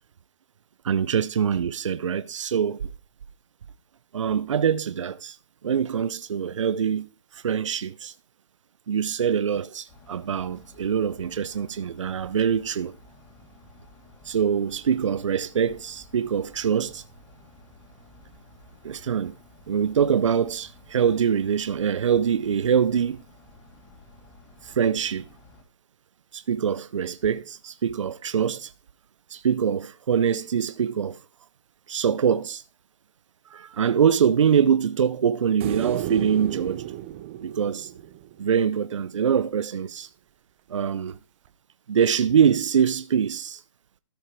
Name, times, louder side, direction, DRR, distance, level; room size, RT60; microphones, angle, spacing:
voice 1, 0.8-2.9 4.1-5.4 5.6-7.1 7.3-8.1 8.9-12.9 14.2-17.0 18.8-19.3 19.7-23.2 24.6-25.2 26.3-28.7 29.3-31.2 31.9-32.6 33.5-36.8 37.4-37.9 38.4-40.1 40.7-41.2 41.9-43.6, right 8 dB, 75° right, 0.5 m, -24 dB
sound 1, 9.9-25.6, left 1 dB, 20° left, 2.6 m, -52 dB
sound 2, 35.6-38.9 41.5-41.6, right 13 dB, 25° right, 0.5 m, -33 dB
13.5 x 5.7 x 4.5 m
hypercardioid pair, 155°, 16 cm